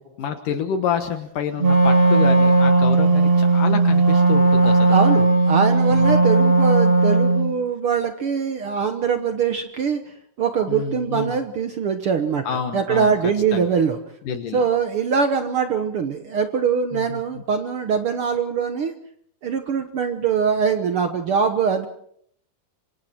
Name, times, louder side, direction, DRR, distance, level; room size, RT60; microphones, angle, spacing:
voice 1, 0.2-5.0 5.9-6.3 10.7-11.4 12.4-13.1 13.5-13.7 14.3-14.6 16.9-17.4, left 7 dB, 65° left, 7 dB, 2.8 m, -28 dB
Wind instrument woodwind instrument, 1.6-7.5, right 3 dB, 30° right, 1.0 m, -16 dB
voice 2, 4.6-14.0 14.5-18.9 19.4-21.9, right 6 dB, 75° right, 7 dB, 1.2 m, -23 dB
27.0 x 25.0 x 4.4 m, 0.65 s
omnidirectional pair, 4.2 m